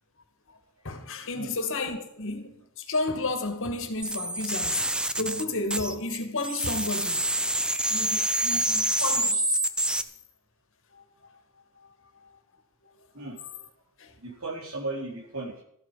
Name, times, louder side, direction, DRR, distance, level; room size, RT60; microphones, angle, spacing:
voice 1, 0.8-4.9 5.1-7.3 7.9-9.6 10.9-11.0 11.8-12.4 14.0-14.1, left 3 dB, 65° left, 2.2 m, -32 dB
sound 1, 4.0-6.2 6.4-10.0, right 1 dB, 5° right, 0.7 m, -27 dB
voice 2, 14.2-15.6, right 2 dB, 70° right, 4.3 m, -36 dB
14.0 x 12.0 x 5.8 m
head